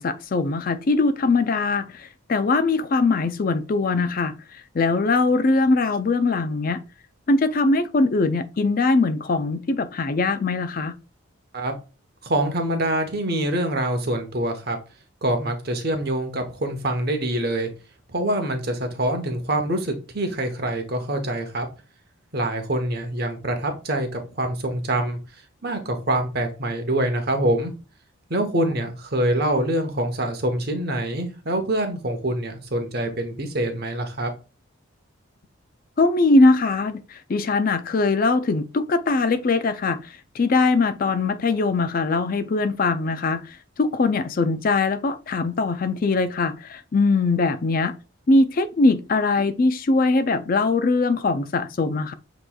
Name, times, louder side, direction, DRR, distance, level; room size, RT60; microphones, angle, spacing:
voice 1, 0.0-4.3 4.7-6.8 7.3-10.9 36.0-40.0 40.3-43.4 43.8-47.9 48.3-52.1, left 3 dB, 40° left, 0.4 m, -21 dB
voice 2, 12.2-14.8 15.2-17.7 18.1-21.7 22.3-25.2 25.6-27.7 28.3-34.3, right 1 dB, 45° right, 1.0 m, -25 dB
7.5 x 3.1 x 2.3 m
head